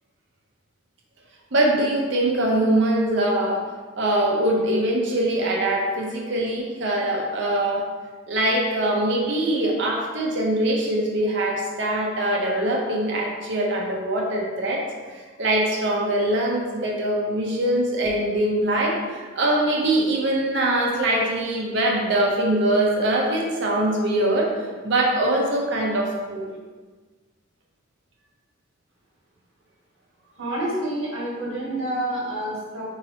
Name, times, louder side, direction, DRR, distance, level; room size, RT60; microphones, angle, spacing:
voice 1, 1.5-3.6 4.0-7.9 8.3-14.8 15.1-24.5 24.8-26.5, right 1 dB, 60° right, -1 dB, 0.6 m, -23 dB
voice 2, 30.4-32.9, right 1 dB, 80° right, -6 dB, 1.3 m, -28 dB
4.0 x 2.9 x 2.7 m, 1.4 s
head